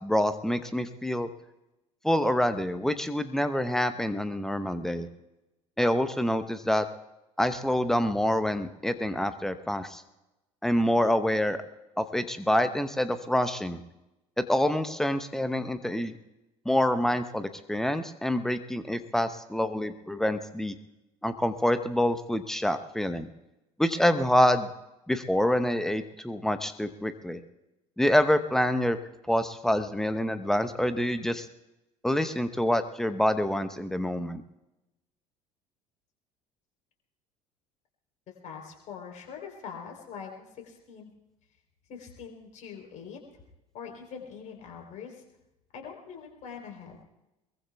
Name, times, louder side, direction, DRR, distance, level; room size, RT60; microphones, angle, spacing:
voice 1, 0.0-1.3 2.0-5.1 5.8-6.9 7.4-10.0 10.6-11.6 12.0-13.8 14.4-16.1 16.6-20.7 21.2-23.3 23.8-24.7 25.1-27.4 28.0-29.0 29.3-31.5 32.0-34.4, left 1 dB, ahead, 10 dB, 0.9 m, -26 dB
voice 2, 38.4-41.1 41.9-43.2 43.7-45.2 45.7-47.0, left 6 dB, 45° left, 2 dB, 3.6 m, -43 dB
23.5 x 22.0 x 2.3 m, 0.97 s
figure-of-eight pair, 65°, 17 cm